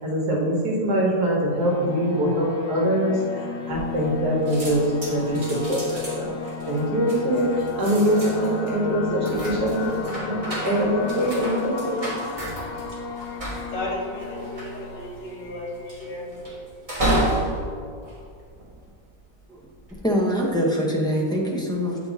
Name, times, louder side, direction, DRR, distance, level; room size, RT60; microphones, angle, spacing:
voice 1, 0.0-12.0, equal, 75° right, -3 dB, 2.0 m, -23 dB
sound 1, 1.6-16.9, left 4 dB, 80° left, 1.2 m, -35 dB
sound 2, 3.7-4.2 4.5-19.0 19.6-20.0, right 1 dB, 20° right, 1.4 m, -31 dB
voice 2, 13.7-16.3, left 1 dB, 55° left, -4 dB, 1.8 m, -34 dB
voice 3, 20.0-22.0, equal, 5° left, -3 dB, 0.3 m, -23 dB
8.2 x 4.4 x 4.0 m, 2.2 s
omnidirectional pair, 1.7 m